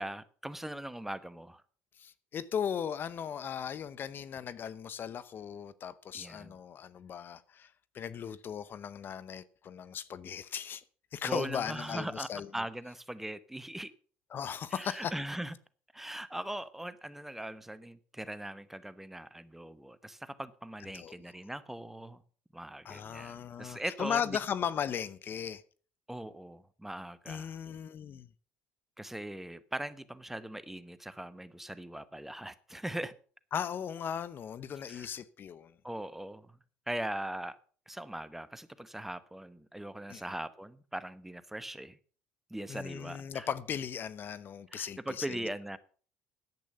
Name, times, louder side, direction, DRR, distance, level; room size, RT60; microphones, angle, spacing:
voice 1, 0.0-1.6 6.1-6.6 11.2-13.9 14.7-15.5 15.9-22.2 22.5-24.4 26.1-27.6 29.0-33.1 34.9-35.2 35.8-36.6 36.9-37.6 37.9-42.0 42.5-43.5 44.7-45.8, right 1 dB, 5° right, 1.0 m, -40 dB
voice 2, 2.0-7.7 7.9-10.8 11.1-12.5 14.3-15.1 20.9-21.1 22.8-25.6 27.3-28.3 33.5-35.7 40.1-40.2 42.7-45.4, left 8 dB, 45° left, 0.8 m, -37 dB
10.5 x 8.4 x 6.8 m
supercardioid pair, 80°, 5 cm